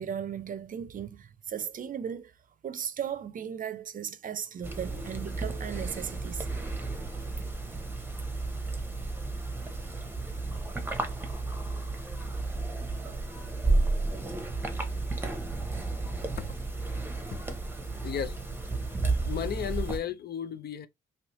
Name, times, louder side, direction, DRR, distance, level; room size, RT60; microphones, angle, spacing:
voice 1, 0.0-2.3 2.6-6.5, right 8 dB, 45° right, 0.5 m, -36 dB
sound 1, 4.6-20.0, right 3 dB, 10° right, 0.8 m, -32 dB
voice 2, 18.0-18.3 19.0-20.9, left 9 dB, 55° left, 0.5 m, -34 dB
3.2 x 3.0 x 3.0 m
cardioid pair, 90°, 20 cm